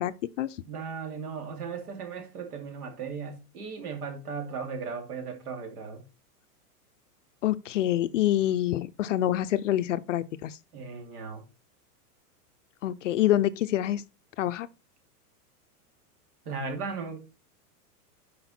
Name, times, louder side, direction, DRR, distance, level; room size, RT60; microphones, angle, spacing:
voice 1, 0.0-0.5 7.4-10.6 12.8-14.0 14.4-14.7, left 13 dB, 55° left, 0.5 m, -26 dB
voice 2, 0.7-6.0 10.7-11.4 16.5-17.2, right 5 dB, 75° right, 2.7 m, -36 dB
8.0 x 5.2 x 4.2 m
supercardioid pair, 175°, 46 cm